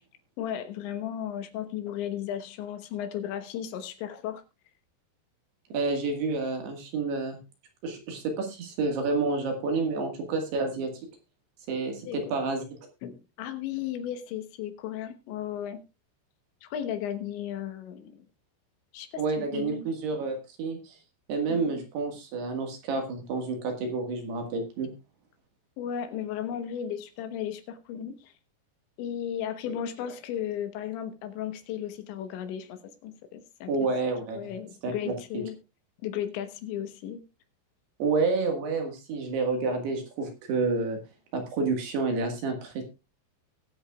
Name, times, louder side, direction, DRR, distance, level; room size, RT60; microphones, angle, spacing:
voice 1, 0.4-4.4 12.0-12.4 13.0-15.8 16.6-18.2 18.9-19.9 21.5-21.8 25.8-28.3 29.0-33.9 34.3-35.6 36.0-37.2, left 10 dB, 75° left, 8 dB, 3.2 m, -35 dB
voice 2, 5.7-7.4 7.8-10.9 11.7-12.6 19.2-21.0 21.3-24.9 33.7-34.5 34.8-34.9 38.0-41.0 41.3-42.8, right 3 dB, 65° right, 4 dB, 3.3 m, -29 dB
21.0 x 8.0 x 2.3 m, 0.27 s
omnidirectional pair, 5.7 m